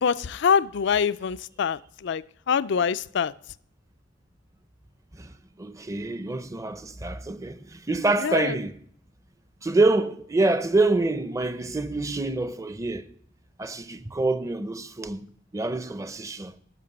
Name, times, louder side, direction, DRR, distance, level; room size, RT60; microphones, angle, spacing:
voice 1, 0.0-2.2 2.5-3.3 8.2-8.6, left 6 dB, 60° left, 0.4 m, -24 dB
voice 2, 5.6-8.8 9.6-13.1 13.6-15.3 15.5-16.5, right 2 dB, 15° right, 0.6 m, -26 dB
11.0 x 6.6 x 7.8 m
head